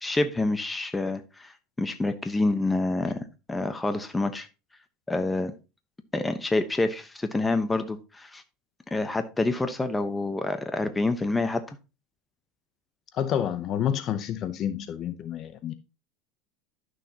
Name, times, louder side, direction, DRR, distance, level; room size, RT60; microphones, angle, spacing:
voice 1, 0.0-1.5 1.8-4.5 5.1-5.5 6.1-8.4 8.9-11.6, left 2 dB, 10° left, 1.0 m, -27 dB
voice 2, 13.1-15.7, left 9 dB, 40° left, 0.7 m, -29 dB
11.5 x 6.3 x 2.9 m
supercardioid pair, 130°, 0 cm